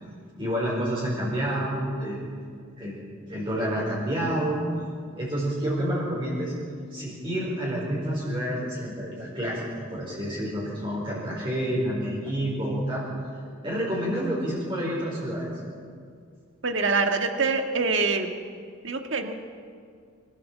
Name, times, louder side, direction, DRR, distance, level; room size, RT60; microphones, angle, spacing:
voice 1, 0.4-2.2 2.8-2.9 3.3-4.6 5.2-6.5 6.9-9.6 9.9-13.3 13.6-15.5, equal, 25° right, -6 dB, 4.7 m, -29 dB
voice 2, 16.6-18.3 18.8-19.3, right 4 dB, 60° right, 5 dB, 1.8 m, -25 dB
25.5 x 15.5 x 7.5 m, 2.2 s
head